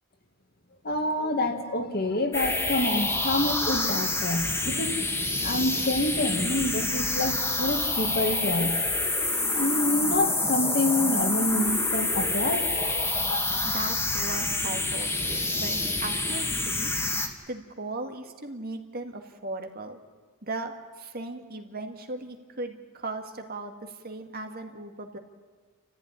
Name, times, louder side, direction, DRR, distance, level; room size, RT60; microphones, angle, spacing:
voice 1, 0.8-5.1 5.4-8.8 9.5-13.8, left 1 dB, 45° left, 5 dB, 2.2 m, -28 dB
sound 1, 2.3-17.3, left 2 dB, 10° left, 2.2 m, -27 dB
voice 2, 13.6-16.9 17.5-20.0 20.4-25.2, right 2 dB, 45° right, 5 dB, 2.1 m, -37 dB
30.0 x 14.5 x 10.0 m, 1.5 s
head